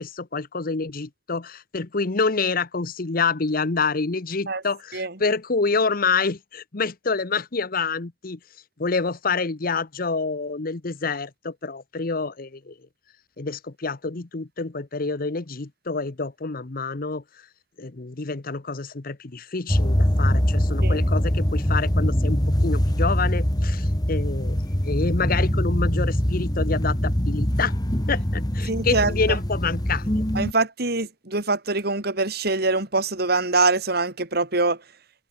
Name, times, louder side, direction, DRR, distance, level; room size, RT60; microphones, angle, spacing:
voice 1, 0.0-8.4 8.8-12.7 13.4-17.2 17.8-27.8 28.1-30.2, left 4 dB, 50° left, 1.0 m, -27 dB
sound 1, 19.7-30.5, equal, 20° left, 2.0 m, -23 dB
voice 2, 28.7-29.1 30.3-34.8, right 3 dB, 55° right, 3.9 m, -24 dB
head